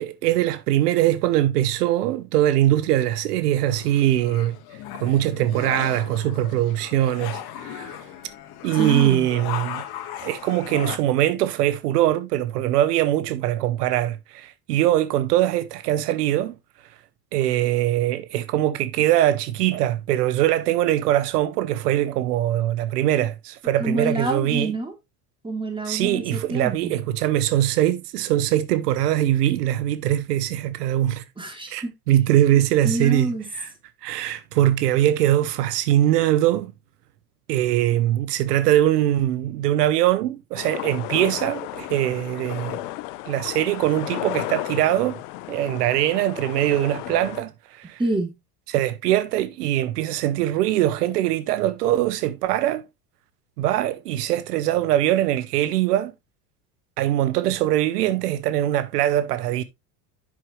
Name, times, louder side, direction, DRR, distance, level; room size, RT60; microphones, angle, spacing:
voice 1, 0.0-4.6 5.0-8.0 8.6-9.8 10.2-16.6 17.3-24.7 25.9-31.2 31.7-33.7 34.0-36.7 37.5-42.8 43.3-45.2 45.5-48.0 48.7-52.8 53.6-56.1 57.0-59.6, right 13 dB, 85° right, 0.9 m, -22 dB
sound 1, 3.7-11.0, left 11 dB, 50° left, 1.6 m, -36 dB
voice 2, 8.7-9.3 23.8-24.9 25.4-26.9 31.4-31.9 32.5-33.5 48.0-48.3, right 2 dB, 10° right, 3.1 m, -27 dB
sound 2, 40.6-47.4, left 18 dB, 75° left, 0.8 m, -33 dB
9.5 x 6.2 x 3.1 m
supercardioid pair, 100°, 46 cm